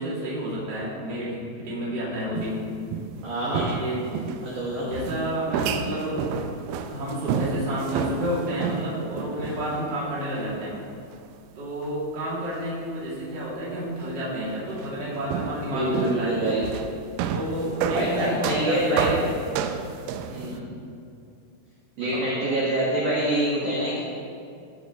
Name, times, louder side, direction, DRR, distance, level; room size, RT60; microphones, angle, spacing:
voice 1, 0.0-2.6 3.5-4.0 4.8-6.3 6.9-10.7 11.5-16.4 17.3-19.3 20.5-20.7 22.0-22.4, right 1 dB, 40° right, -8 dB, 1.7 m, -30 dB
sound 1, 2.3-3.2 3.5-4.5 4.9-9.8 10.5-10.6 11.8-11.9 13.3-13.4 14.7-14.9 15.3-20.6, right 7 dB, 85° right, 3.0 m, -30 dB
voice 2, 3.2-3.7 4.4-4.9 15.7-16.6 17.9-19.1 20.3-20.5 22.0-24.0, right 1 dB, 65° right, -7 dB, 2.0 m, -25 dB
16.5 x 6.7 x 3.0 m, 2.4 s
omnidirectional pair, 6.0 m